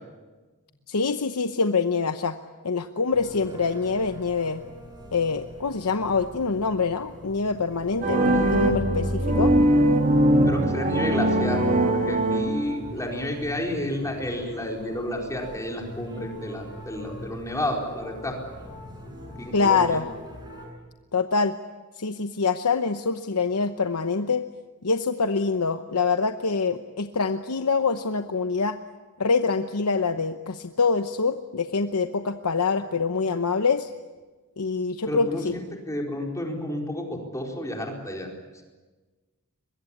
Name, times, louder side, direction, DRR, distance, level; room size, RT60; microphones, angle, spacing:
voice 1, 0.9-2.4 2.6-4.6 5.1-9.5 19.5-20.0 21.1-21.5 22.0-24.4 24.8-28.8 29.2-33.9 34.6-35.5, left 4 dB, 90° left, 8 dB, 0.9 m, -25 dB
sound 1, 3.1-20.7, left 1 dB, 20° right, 8.0 m, -42 dB
sound 2, 8.0-13.0, right 1 dB, 40° right, 2.7 m, -21 dB
voice 2, 8.1-8.5 10.4-18.4 19.4-20.0 35.1-38.3, left 1 dB, 15° left, 0 dB, 4.4 m, -31 dB
23.5 x 22.0 x 8.6 m, 1.3 s
head